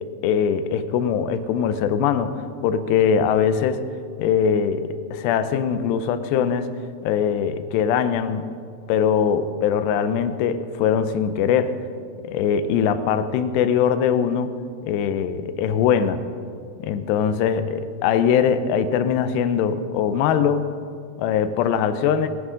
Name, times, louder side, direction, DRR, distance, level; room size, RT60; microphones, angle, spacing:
voice 1, 0.2-2.3 2.6-3.8 4.2-6.7 7.0-8.5 8.9-11.8 12.2-14.5 14.8-16.2 16.8-20.7 21.2-22.3, left 7 dB, 90° left, 11 dB, 2.9 m, -21 dB
20.0 x 14.0 x 3.8 m, 2.2 s
omnidirectional pair, 4.8 m